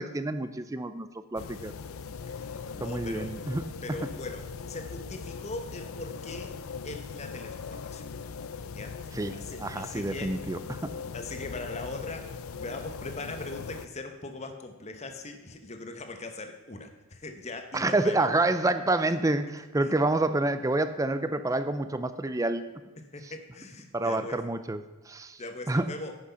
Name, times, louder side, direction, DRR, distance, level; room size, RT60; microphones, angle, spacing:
voice 1, 0.0-1.7 2.8-3.6 9.1-10.9 17.7-22.6 23.9-25.4 25.7-25.9, right 2 dB, 15° right, 11 dB, 0.4 m, -28 dB
sound 1, 1.4-13.9, left 5 dB, 75° left, 0.5 m, -40 dB
voice 2, 2.3-3.4 3.8-6.5 6.8-8.0 8.7-10.4 11.1-18.3 19.0-19.1 19.8-19.9 23.1-24.4 25.4-26.2, left 2 dB, 30° left, 6 dB, 0.9 m, -41 dB
9.8 x 6.2 x 5.6 m, 1.2 s
head